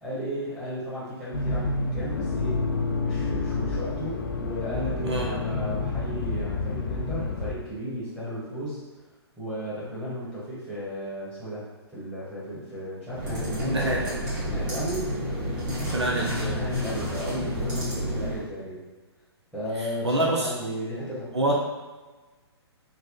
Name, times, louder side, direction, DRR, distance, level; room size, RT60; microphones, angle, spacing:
voice 1, 0.0-2.6 3.0-8.8 9.4-15.1 16.4-18.8 19.5-21.5, equal, 10° right, -11 dB, 1.1 m, -34 dB
Accelerating revving vroom, 1.3-7.6, left 3 dB, 50° left, 0.4 m, -29 dB
Mouse PC, 13.1-18.5, equal, 25° right, 1.4 m, -30 dB
voice 2, 13.6-14.0 15.9-16.6 20.0-20.5 21.3-21.5, right 1 dB, 80° right, -2 dB, 0.7 m, -25 dB
3.5 x 2.1 x 3.7 m, 1.3 s
figure-of-eight pair, 120°, 14 cm